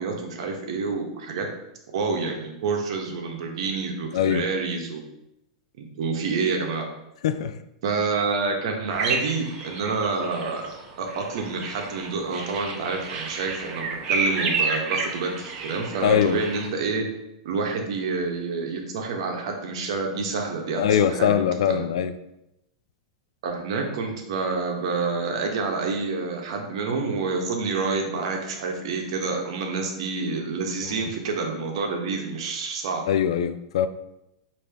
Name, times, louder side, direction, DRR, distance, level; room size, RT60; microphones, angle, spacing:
voice 1, 0.0-1.5 1.9-5.0 5.8-6.9 7.8-10.6 11.0-17.1 17.4-21.9 23.4-33.0, right 4 dB, 70° right, 2 dB, 0.9 m, -28 dB
voice 2, 4.1-4.5 7.2-7.5 16.0-16.4 20.8-22.1 33.1-33.9, left 9 dB, 80° left, 12 dB, 0.3 m, -22 dB
sound 1, 8.9-16.7, right 4 dB, 35° right, 0.8 m, -30 dB
5.1 x 2.8 x 3.3 m, 0.87 s
supercardioid pair, 135°, 3 cm